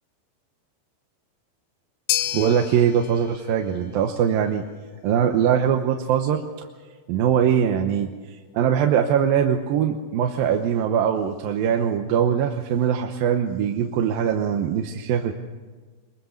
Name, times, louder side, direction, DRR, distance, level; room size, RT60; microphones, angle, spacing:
sound 1, 2.1-10.5, left 12 dB, 85° left, 3.0 m, -35 dB
voice 1, 2.3-4.6 5.0-6.4 7.1-8.1 8.5-15.3, right 8 dB, 80° right, 4 dB, 2.8 m, -22 dB
23.5 x 22.0 x 6.6 m, 1.4 s
omnidirectional pair, 4.1 m